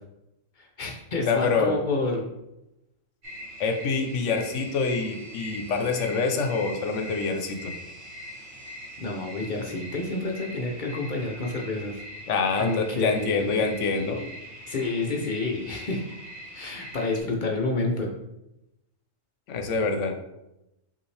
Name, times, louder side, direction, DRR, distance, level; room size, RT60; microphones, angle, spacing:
voice 1, 0.6-2.3 9.0-12.0 12.5-13.5 14.7-16.0 16.5-18.1, left 3 dB, 50° left, 1 dB, 0.6 m, -29 dB
voice 2, 1.3-1.8 3.6-7.7 12.3-14.2 19.5-20.1, left 4 dB, 75° left, 5 dB, 0.9 m, -26 dB
sound 1, 3.2-17.2, equal, 50° right, 1.2 m, -42 dB
5.2 x 2.7 x 3.2 m, 0.90 s
omnidirectional pair, 1.3 m